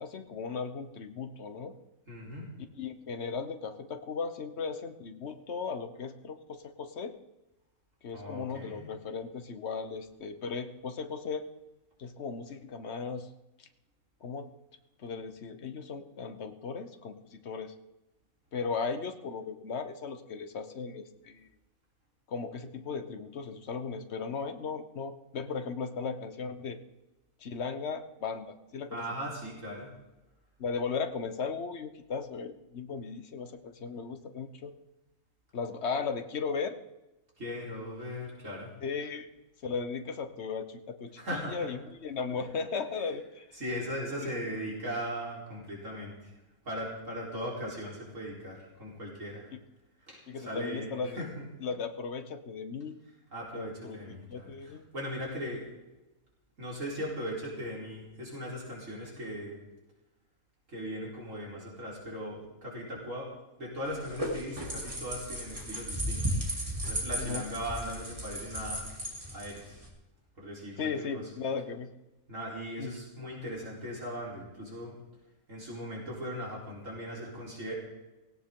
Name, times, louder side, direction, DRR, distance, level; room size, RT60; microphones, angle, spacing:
voice 1, 0.0-1.7 2.7-7.1 8.0-11.4 12.0-13.3 13.6-13.7 14.2-14.5 15.0-17.7 18.5-21.5 22.3-26.8 27.4-29.0 30.6-34.7 35.5-36.8 38.8-39.3 39.6-43.5 44.2-44.3 49.5-49.6 50.3-51.2 51.6-53.0 53.5-54.9 67.2-67.5 70.8-71.9 72.8-72.9, left 5 dB, 55° left, 9 dB, 1.3 m, -36 dB
voice 2, 2.1-2.5 8.1-8.9 28.9-29.9 37.4-38.7 41.2-41.6 43.5-46.1 46.6-49.4 50.1-51.4 53.3-55.6 56.6-59.6 60.7-63.3 63.6-66.2 66.9-68.8 69.3-69.7 70.4-71.3 72.3-74.9 75.5-77.7, equal, 60° right, -4 dB, 4.5 m, -38 dB
sound 1, 63.9-69.9, right 1 dB, 25° right, 3.1 m, -35 dB
17.0 x 17.0 x 3.8 m, 1.0 s
omnidirectional pair, 1.5 m